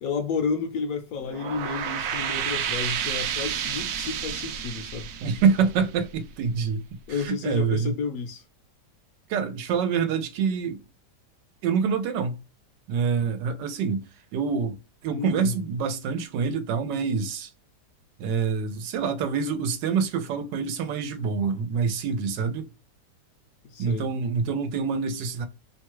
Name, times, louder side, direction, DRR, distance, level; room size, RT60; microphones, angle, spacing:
voice 1, 0.0-5.1 7.1-8.4 15.1-15.6 23.6-24.1, left 5 dB, 70° left, 0.9 m, -31 dB
sound 1, 1.2-6.5, right 8 dB, 70° right, 1.0 m, -31 dB
voice 2, 5.2-6.8 7.1-7.9 9.3-10.8 11.6-12.3 12.9-14.0 14.3-17.5 18.2-22.7 23.8-25.5, right 6 dB, 90° right, 1.3 m, -26 dB
3.0 x 2.2 x 2.9 m
omnidirectional pair, 1.8 m